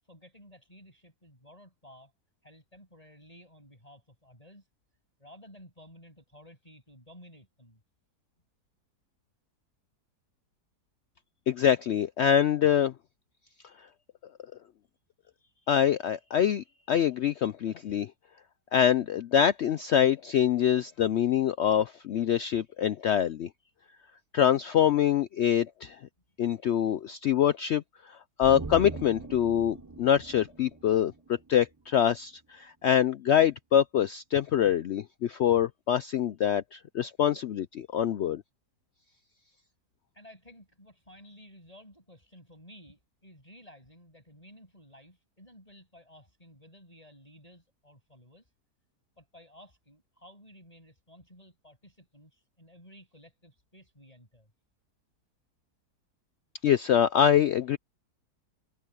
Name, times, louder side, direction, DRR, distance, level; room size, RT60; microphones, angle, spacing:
voice 1, 0.1-2.1 2.4-4.7 5.2-7.8 26.9-27.0 40.1-48.5 49.2-54.5, equal, 20° left, 7.5 m, -54 dB
voice 2, 11.5-12.9 15.7-18.1 18.7-23.5 24.3-26.0 26.4-27.8 28.4-38.4 56.6-57.8, left 9 dB, 80° left, 0.6 m, -25 dB
sound 1, 28.4-31.8 32.1-32.2, right 3 dB, 15° right, 0.7 m, -42 dB
omnidirectional pair, 1.7 m